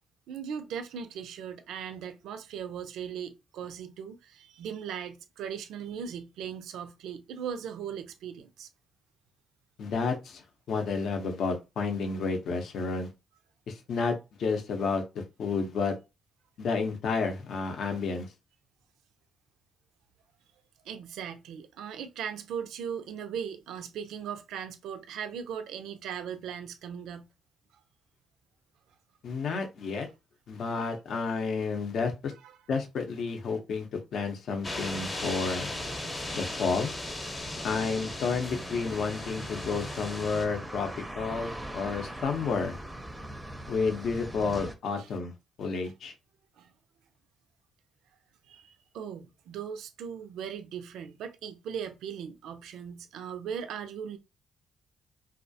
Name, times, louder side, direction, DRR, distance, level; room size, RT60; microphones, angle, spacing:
voice 1, 0.3-8.7 20.8-27.3 29.9-30.0 30.8-30.9 32.4-32.6 38.9-39.0 45.0-45.1 46.6-46.7 48.5-54.2, right 8 dB, 80° right, 0.3 m, -38 dB
voice 2, 9.8-13.1 13.7-16.0 16.6-18.3 29.2-30.1 30.5-32.3 32.7-35.7 36.3-36.9 37.6-40.9 41.2-42.8 43.7-45.3 45.6-46.1, left 4 dB, 65° left, 0.6 m, -31 dB
sound 1, 34.6-40.5, left 2 dB, 25° left, 0.7 m, -37 dB
sound 2, 35.4-44.7, right 1 dB, 10° right, 0.5 m, -42 dB
2.3 x 2.0 x 2.6 m
cardioid pair, 90°, 0 cm